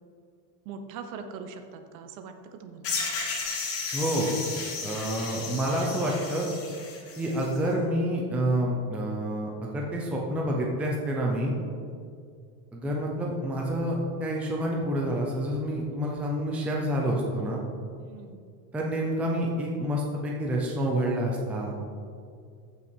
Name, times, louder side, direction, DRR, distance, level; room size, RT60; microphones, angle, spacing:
voice 1, 0.6-3.0 18.0-18.4, right 5 dB, 50° right, 7 dB, 1.1 m, -42 dB
sound 1, 2.8-7.6, left 4 dB, 30° left, 1.6 m, -34 dB
voice 2, 3.9-4.3 4.8-6.5 7.2-11.5 12.7-17.6 18.7-21.7, right 1 dB, 5° right, -2 dB, 0.5 m, -28 dB
14.5 x 6.0 x 4.5 m, 2.3 s
cardioid pair, 170°, 49 cm